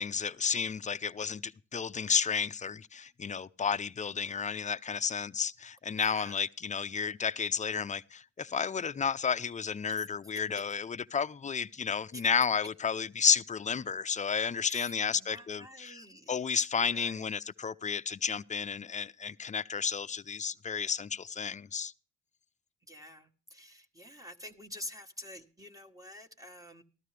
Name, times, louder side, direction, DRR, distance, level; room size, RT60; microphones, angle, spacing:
voice 1, 0.0-15.9 16.3-21.9, left 6 dB, 25° left, 0.5 m, -32 dB
voice 2, 5.9-6.4 9.9-10.1 12.1-12.3 14.6-17.3 22.9-26.8, left 1 dB, 10° right, 1.3 m, -48 dB
14.5 x 12.5 x 3.3 m
cardioid pair, 90°, 30 cm